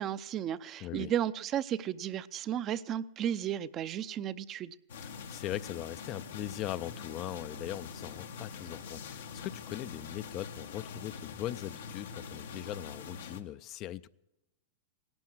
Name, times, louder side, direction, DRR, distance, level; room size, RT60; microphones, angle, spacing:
voice 1, 0.0-4.7, right 10 dB, 35° right, 0.6 m, -34 dB
voice 2, 0.8-1.1 5.0-14.1, left 13 dB, 40° left, 0.5 m, -40 dB
sound 1, 4.9-13.4, left 5 dB, 80° left, 1.2 m, -44 dB
17.5 x 11.5 x 6.3 m
hypercardioid pair, 110°, 0 cm